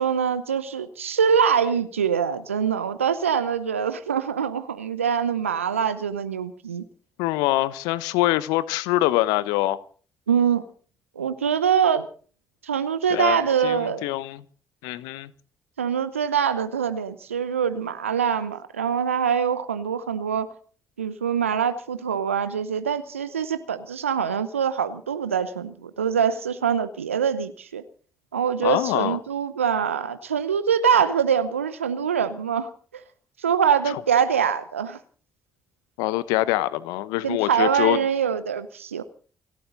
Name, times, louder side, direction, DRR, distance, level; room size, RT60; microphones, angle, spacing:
voice 1, 0.0-6.8 10.3-10.6 11.2-12.1 12.6-14.1 15.8-20.5 21.0-27.8 28.3-33.0 33.4-35.0 37.2-39.0, right 7 dB, 85° right, 0.8 m, -24 dB
voice 2, 7.2-9.8 13.1-13.4 13.6-14.4 14.8-15.3 28.6-29.2 36.0-38.0, left 16 dB, 70° left, 1.0 m, -24 dB
29.0 x 12.5 x 3.9 m
figure-of-eight pair, 40°, 7 cm